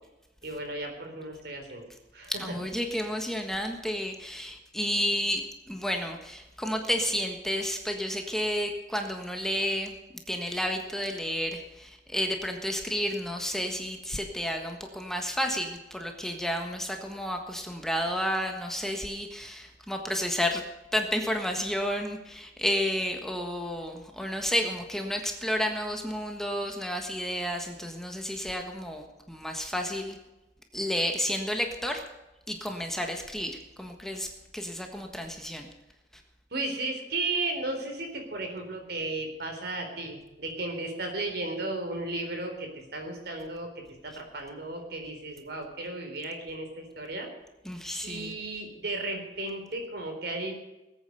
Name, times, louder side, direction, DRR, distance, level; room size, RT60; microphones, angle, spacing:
voice 1, 0.4-1.9 2.1-2.3 36.5-43.7 44.0-47.3 48.0-50.5, right 2 dB, 65° right, 4 dB, 4.1 m, -34 dB
voice 2, 2.3-10.0 10.3-20.6 20.9-30.2 30.7-32.0 32.5-35.7 36.1-36.2 47.6-48.3, equal, 5° left, 3 dB, 1.4 m, -31 dB
19.5 x 8.9 x 6.8 m, 1.0 s
head